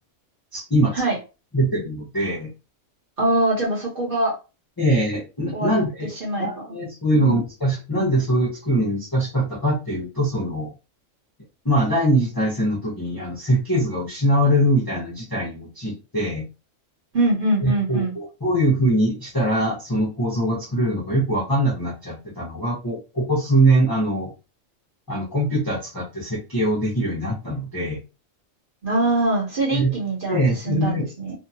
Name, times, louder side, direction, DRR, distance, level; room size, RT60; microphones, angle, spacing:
voice 1, 0.5-0.9 1.5-2.5 4.8-6.1 6.4-10.7 11.6-16.5 17.6-24.3 25.1-28.0 29.7-29.9 30.3-31.1, right 1 dB, 25° left, -5 dB, 0.5 m, -22 dB
voice 2, 3.2-4.4 5.5-5.7 6.2-6.5 7.1-7.4 17.1-18.1 28.8-31.4, right 2 dB, 45° right, -2 dB, 1.0 m, -23 dB
2.7 x 2.3 x 2.7 m, 0.30 s
omnidirectional pair, 1.4 m